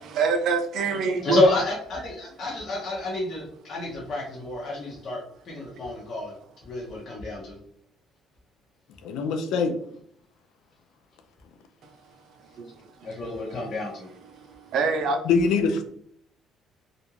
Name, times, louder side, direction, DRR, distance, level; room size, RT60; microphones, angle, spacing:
voice 1, 0.0-1.4 12.5-12.7 13.0-13.1 14.5-15.2, right 4 dB, 70° right, 5 dB, 0.5 m, -25 dB
voice 2, 1.2-5.2 5.4-6.3 6.6-7.6 13.0-14.1, left 2 dB, 55° left, -4 dB, 0.8 m, -28 dB
voice 3, 9.0-9.8 15.2-15.8, left 4 dB, 80° left, 6 dB, 0.4 m, -23 dB
2.5 x 2.1 x 3.0 m, 0.64 s
supercardioid pair, 75°, 0 cm